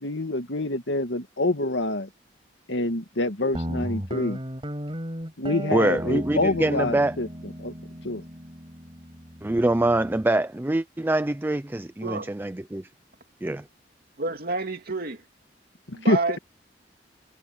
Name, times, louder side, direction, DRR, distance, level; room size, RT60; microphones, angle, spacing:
voice 1, 0.0-2.1 2.7-4.4 5.4-7.7 8.0-8.2 15.9-16.2, left 2 dB, 85° left, 2.1 m, -26 dB
Guitar, 3.5-10.2, equal, 30° right, 5.3 m, -36 dB
voice 2, 5.7-7.1 9.4-12.9 13.4-13.6, right 1 dB, 10° right, 0.4 m, -24 dB
voice 3, 12.0-12.3 14.2-15.2 15.9-16.4, right 3 dB, 55° right, 2.6 m, -29 dB
head